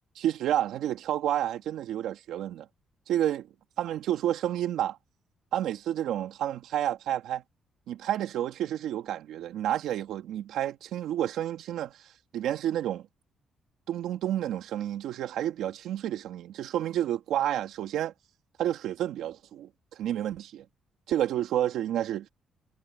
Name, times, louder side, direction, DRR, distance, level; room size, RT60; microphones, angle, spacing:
voice 1, 0.2-2.7 3.1-3.5 3.8-5.0 5.5-7.4 7.9-11.9 12.3-13.0 13.9-18.1 18.6-19.7 20.0-20.6 21.1-22.3, right 11 dB, 80° right, 2.4 m, -30 dB
cardioid pair, 90°, 0 cm